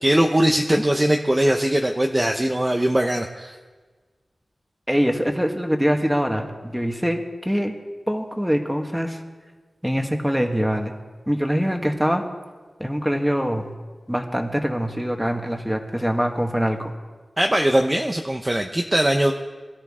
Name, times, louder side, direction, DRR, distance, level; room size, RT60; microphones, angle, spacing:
voice 1, 0.0-3.6 17.4-19.3, right 1 dB, 20° right, 3 dB, 0.8 m, -20 dB
voice 2, 4.9-7.7 8.1-9.2 9.8-10.9 11.3-12.2 12.8-13.7 14.1-16.9, equal, 5° right, 3 dB, 1.6 m, -23 dB
22.0 x 13.0 x 3.7 m, 1.4 s
wide cardioid pair, 70°, 0 cm